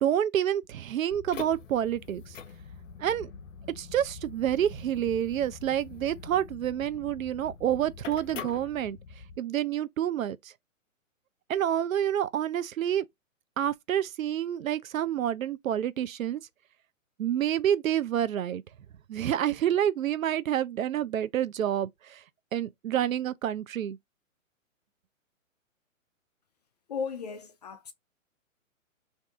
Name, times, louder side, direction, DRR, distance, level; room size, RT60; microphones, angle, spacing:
voice 1, 0.0-2.3 3.0-3.3 3.8-9.0 9.4-10.5 11.5-13.0 13.6-16.4 17.2-18.6 19.1-22.2 22.5-24.0, right 10 dB, 75° right, 0.6 m, -28 dB
sound 1, 1.1-9.4, left 6 dB, 65° left, 0.7 m, -44 dB
voice 2, 26.9-27.9, left 6 dB, 35° left, 0.4 m, -35 dB
2.7 x 2.5 x 3.4 m
hypercardioid pair, 130°, 41 cm